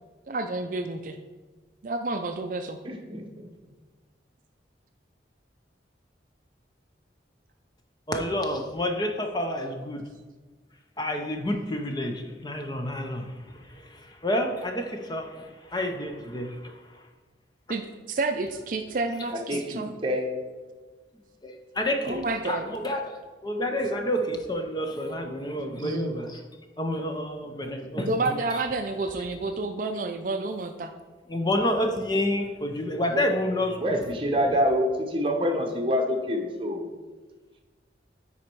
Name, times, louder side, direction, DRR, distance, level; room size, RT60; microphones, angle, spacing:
voice 1, 0.3-1.1 1.8-2.8 17.7-19.9 22.0-22.7 25.8-26.2 27.9-30.9 33.0-33.2, right 3 dB, 45° right, 6 dB, 0.4 m, -30 dB
voice 2, 2.8-3.5 19.5-20.3 33.1-33.2 33.8-36.9, equal, 30° right, 2 dB, 1.0 m, -26 dB
voice 3, 8.1-10.0 11.0-13.3 14.2-16.7 21.4-26.4 26.8-28.3 31.3-34.0 34.3-34.4, left 1 dB, 25° left, 4 dB, 0.6 m, -29 dB
9.7 x 4.2 x 4.5 m, 1.3 s
head